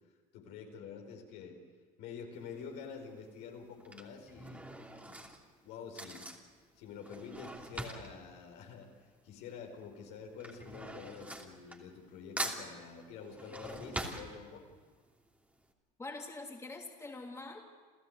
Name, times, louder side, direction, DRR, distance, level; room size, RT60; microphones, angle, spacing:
voice 1, 0.3-1.6 2.0-4.6 5.0-5.2 5.6-6.3 6.8-8.9 9.2-14.6, left 6 dB, 75° left, 2 dB, 5.0 m, -47 dB
Drawer open or close / Cutlery silverware, 2.4-2.7 3.6-9.5 9.7-12.1 12.4-14.9 15.3-15.4 15.6-15.7, right 1 dB, 10° right, 2.9 m, -43 dB
voice 2, 16.0-17.6, left 2 dB, 15° left, 1 dB, 3.0 m, -44 dB
28.5 x 14.5 x 8.2 m, 1.5 s
supercardioid pair, 100°, 19 cm